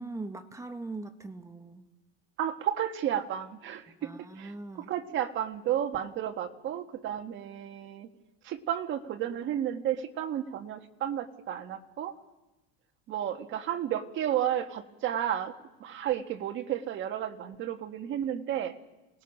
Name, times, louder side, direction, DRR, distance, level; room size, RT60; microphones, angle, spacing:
voice 1, 0.0-1.9 4.0-4.9, right 3 dB, 10° right, 8 dB, 1.0 m, -41 dB
voice 2, 2.4-8.1 8.4-12.1 13.1-15.5 15.8-18.7, right 10 dB, 40° right, 7 dB, 1.6 m, -32 dB
28.0 x 19.0 x 6.4 m, 1.0 s
cardioid pair, 150°, 30 cm